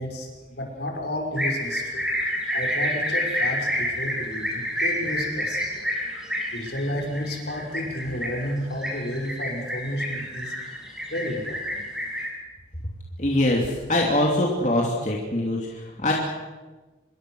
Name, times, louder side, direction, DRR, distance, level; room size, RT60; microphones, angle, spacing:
voice 1, 0.0-2.1 2.5-5.9 6.5-10.8 11.1-11.8, equal, 65° left, 2 dB, 5.6 m, -32 dB
sound 1, 1.4-12.3, equal, 5° right, 6.1 m, -28 dB
voice 2, 13.2-16.1, left 1 dB, 40° left, -2 dB, 3.1 m, -23 dB
26.5 x 22.0 x 6.4 m, 1.2 s
head